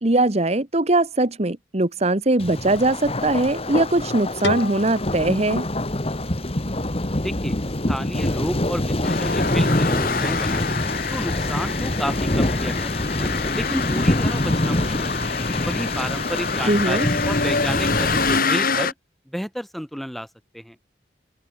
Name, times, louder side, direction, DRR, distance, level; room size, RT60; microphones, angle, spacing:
voice 1, 0.0-5.7 16.6-17.1, right 2 dB, 35° right, 1.3 m, -21 dB
Thunder, 2.4-18.4, left 1 dB, 35° left, 1.8 m, -25 dB
sound 1, 4.4-7.3, left 2 dB, 85° left, 3.8 m, -33 dB
voice 2, 7.2-7.5 7.9-10.7 11.1-12.9 13.2-15.3 15.6-18.9 19.3-20.3 20.5-20.8, equal, ahead, 6.5 m, -31 dB
sound 2, 9.0-18.9, left 4 dB, 50° left, 3.8 m, -26 dB
head